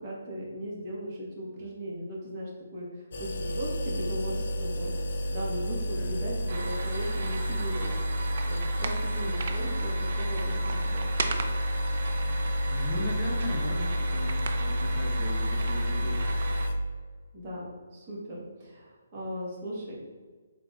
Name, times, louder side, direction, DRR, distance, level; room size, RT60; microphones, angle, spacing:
voice 1, 0.0-11.1 17.3-19.9, equal, 30° right, -5 dB, 1.2 m, -38 dB
sound 1, 3.1-16.8, equal, 55° left, 0.5 m, -30 dB
sound 2, 6.5-16.7, right 4 dB, 45° right, 0.4 m, -37 dB
voice 2, 12.7-16.3, left 1 dB, 10° left, -8 dB, 0.6 m, -37 dB
4.1 x 3.9 x 2.3 m, 1.4 s
hypercardioid pair, 170°, 0 cm